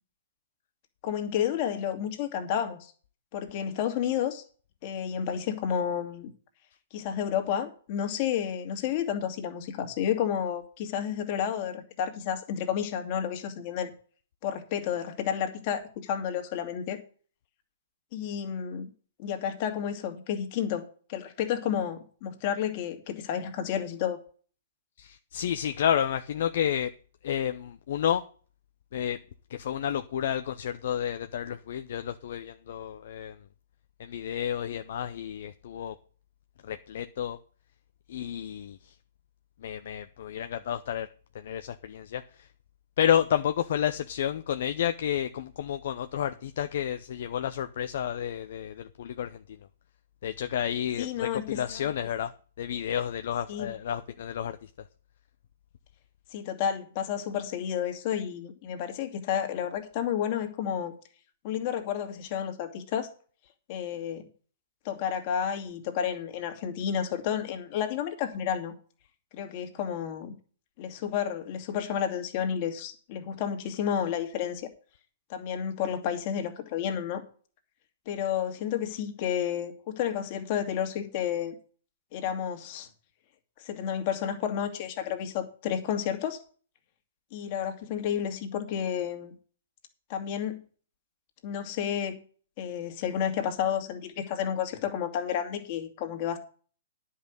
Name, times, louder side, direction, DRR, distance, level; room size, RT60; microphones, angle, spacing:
voice 1, 1.0-2.9 3.3-4.4 4.8-6.3 6.9-13.9 14.4-17.0 18.1-18.9 19.2-24.2 51.0-51.6 53.5-53.7 56.3-60.9 61.4-63.1 63.7-64.3 64.8-68.7 69.3-70.3 70.8-74.7 75.3-77.2 78.1-81.6 82.1-82.9 83.6-86.4 87.3-89.3 90.1-90.6 91.4-92.2 92.6-96.4, left 9 dB, 45° left, 2.3 m, -31 dB
voice 2, 25.0-26.9 27.2-28.2 28.9-29.2 29.5-33.4 34.0-35.9 36.6-37.4 38.1-38.9 39.6-41.1 41.3-42.5 43.0-49.4 50.2-52.3 52.6-54.7, left 9 dB, 60° left, 0.7 m, -30 dB
10.5 x 5.7 x 8.1 m
hypercardioid pair, 125°, 0 cm